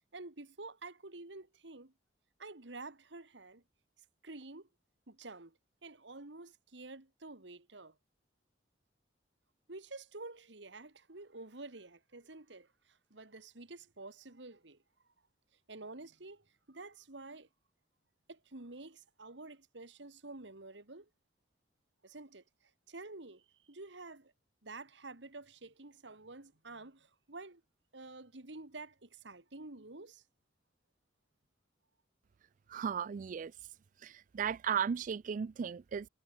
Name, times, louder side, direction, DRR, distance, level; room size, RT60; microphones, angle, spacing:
voice 1, 0.1-1.9 2.4-3.6 4.2-4.7 5.1-8.0 9.7-14.8 15.7-17.5 18.3-21.1 22.0-22.4 22.9-24.3 24.6-27.6 27.9-30.2, right 3 dB, 70° right, 2.0 m, -49 dB
voice 2, 32.7-33.5 34.0-36.1, right 7 dB, 45° right, 0.3 m, -35 dB
head